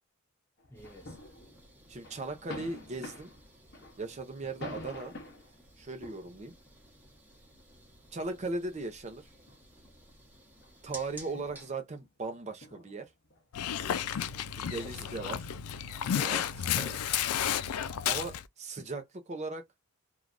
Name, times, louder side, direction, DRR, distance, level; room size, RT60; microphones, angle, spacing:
Fireworks in city, 0.6-1.7 2.0-5.5 6.0-6.6 7.5-7.6 8.4-9.6 10.0-10.3 10.6-10.7 11.3-13.7, left 1 dB, 50° left, 0.8 m, -47 dB
voice 1, 0.7-1.2 4.4-4.7 13.8-15.0, right 1 dB, 10° left, 0.6 m, -54 dB
sound 1, 0.7-11.7, right 1 dB, 10° right, 1.0 m, -55 dB
voice 2, 1.9-3.3 4.0-5.1 5.8-6.5 8.1-9.3 10.8-13.1 14.5-15.5 16.2-17.0 18.1-19.6, right 3 dB, 30° right, 0.5 m, -38 dB
Dog, 13.5-18.4, left 9 dB, 90° left, 0.3 m, -32 dB
3.2 x 2.3 x 2.5 m
head